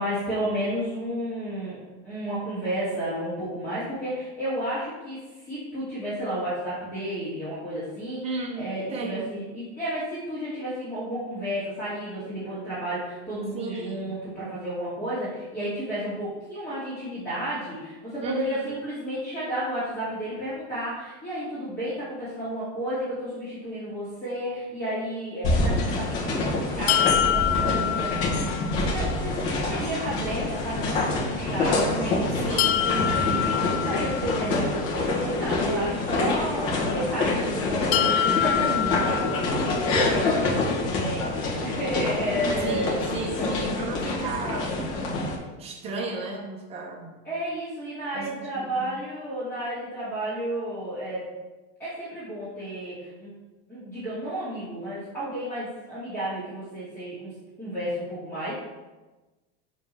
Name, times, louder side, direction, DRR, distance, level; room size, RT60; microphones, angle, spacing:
voice 1, 0.0-1.8 2.0-28.4 28.9-29.4 29.7-32.6 33.0-42.9 43.4-43.5 47.2-51.3 51.8-53.3 53.7-57.3 57.6-58.5, right 1 dB, 5° left, -13 dB, 2.5 m, -32 dB
voice 2, 8.2-9.3 13.5-14.1 18.2-18.7 32.3-33.4 42.6-44.9 45.6-47.1 48.1-48.8, right 4 dB, 20° right, 0 dB, 1.1 m, -34 dB
sound 1, 25.4-45.4, left 2 dB, 50° left, 1.8 m, -26 dB
sound 2, 26.9-28.8 32.6-34.6 37.9-39.9, left 11 dB, 75° left, 0.5 m, -26 dB
7.5 x 3.7 x 5.8 m, 1.2 s
supercardioid pair, 165°, 33 cm